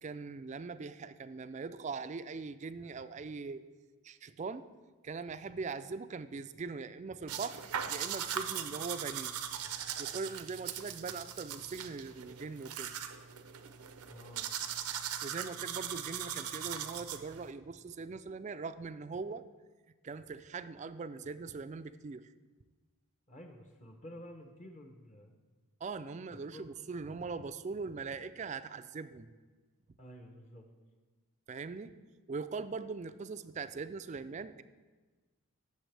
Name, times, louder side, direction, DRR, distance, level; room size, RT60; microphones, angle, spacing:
voice 1, 0.0-3.6 4.0-4.6 5.0-9.4 10.0-12.9 15.2-19.4 20.0-22.3 25.8-29.3 31.5-31.9 32.3-34.6, right 4 dB, 30° right, 12 dB, 0.3 m, -41 dB
sound 1, 7.3-17.5, right 9 dB, 85° right, 0.6 m, -40 dB
voice 2, 14.1-14.6 23.3-25.3 26.3-26.7 30.0-30.7, equal, 30° left, 4 dB, 0.8 m, -51 dB
16.0 x 7.2 x 3.3 m, 1.3 s
head